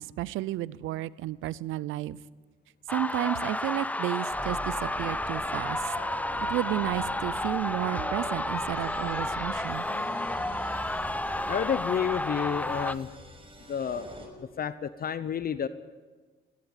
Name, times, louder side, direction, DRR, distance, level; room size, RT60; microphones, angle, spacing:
voice 1, 0.0-2.2 2.9-5.8 6.5-9.8, right 14 dB, 90° right, 21 dB, 0.6 m, -32 dB
sound 1, 2.9-12.9, left 1 dB, 5° left, 0.7 m, -31 dB
sound 2, 4.3-14.3, right 1 dB, 30° right, 5.9 m, -43 dB
voice 2, 11.5-13.1 13.7-14.0 14.6-15.7, left 8 dB, 50° left, 14 dB, 0.9 m, -30 dB
20.5 x 17.5 x 9.0 m, 1.4 s
cardioid pair, 90°, 20 cm